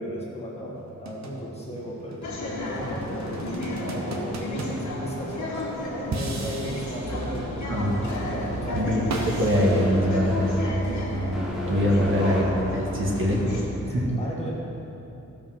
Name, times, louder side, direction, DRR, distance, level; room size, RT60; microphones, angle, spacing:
voice 1, 0.0-10.2 11.6-12.1 13.9-14.5, equal, 20° left, -4 dB, 1.6 m, -36 dB
sound 1, 0.8-5.6 6.1-7.7 8.5-10.5, right 2 dB, 65° right, 1.1 m, -37 dB
sound 2, 2.2-13.6, left 1 dB, 70° left, 1.9 m, -33 dB
sound 3, 7.0-13.9, equal, ahead, 0.9 m, -35 dB
voice 2, 7.7-8.1 8.7-10.8 11.1-14.1, equal, 40° right, -3 dB, 1.5 m, -24 dB
15.5 x 5.2 x 5.7 m, 2.9 s
wide cardioid pair, 180°, 30 cm